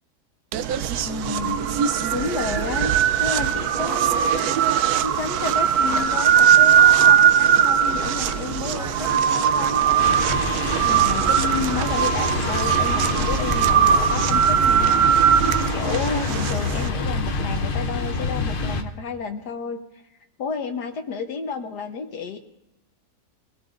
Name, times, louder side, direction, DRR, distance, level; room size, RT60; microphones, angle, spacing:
sound 1, 0.5-16.9, right 9 dB, 70° right, 1.1 m, -20 dB
voice 1, 1.0-1.6 2.1-4.2 5.0-10.2 10.6-15.1 15.7-19.8 20.4-22.4, left 5 dB, 70° left, 5 dB, 1.5 m, -31 dB
sound 2, 4.1-15.3, right 1 dB, 20° right, 1.5 m, -38 dB
sound 3, 10.0-18.8, left 4 dB, 45° left, 0.8 m, -27 dB
22.5 x 17.0 x 2.5 m, 0.91 s
omnidirectional pair, 1.8 m